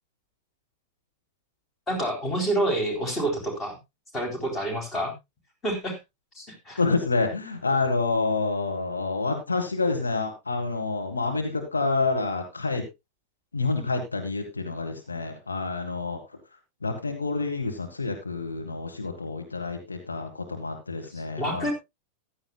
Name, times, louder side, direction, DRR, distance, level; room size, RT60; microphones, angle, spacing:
voice 1, 1.9-3.8 4.1-5.1 5.6-6.0 6.3-6.8 21.1-21.7, right 1 dB, 25° left, 4 dB, 3.9 m, -28 dB
voice 2, 6.8-12.8 13.5-16.2 16.8-21.7, left 3 dB, 75° left, 3 dB, 1.8 m, -28 dB
15.0 x 11.5 x 2.4 m, 0.22 s
figure-of-eight pair, 90°, 0 cm